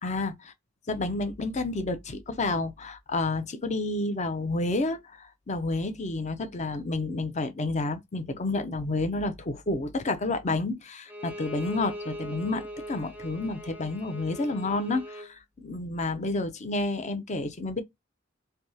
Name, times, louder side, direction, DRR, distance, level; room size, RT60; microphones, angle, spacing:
voice 1, 0.0-0.5 0.9-17.8, left 2 dB, 35° left, 0.5 m, -30 dB
Bowed string instrument, 11.1-15.3, equal, 10° right, 0.6 m, -40 dB
3.4 x 2.7 x 2.7 m
head